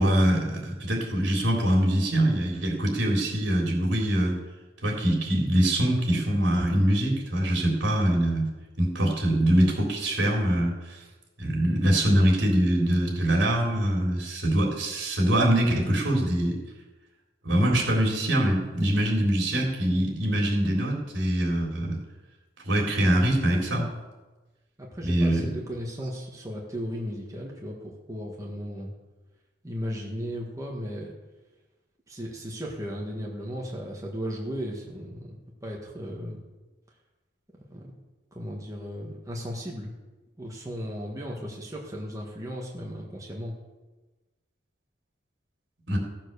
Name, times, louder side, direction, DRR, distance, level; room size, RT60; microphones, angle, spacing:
voice 1, 0.0-4.4 4.8-8.5 8.8-11.0 11.4-16.6 17.4-22.0 22.6-23.9 25.0-25.4 45.9-46.0, right 1 dB, 75° right, -1 dB, 3.6 m, -23 dB
voice 2, 24.8-28.9 29.6-31.1 32.1-36.4 37.7-37.9 38.3-39.9 40.4-43.5, equal, 20° right, -2 dB, 1.7 m, -36 dB
15.5 x 7.5 x 6.9 m, 1.2 s
head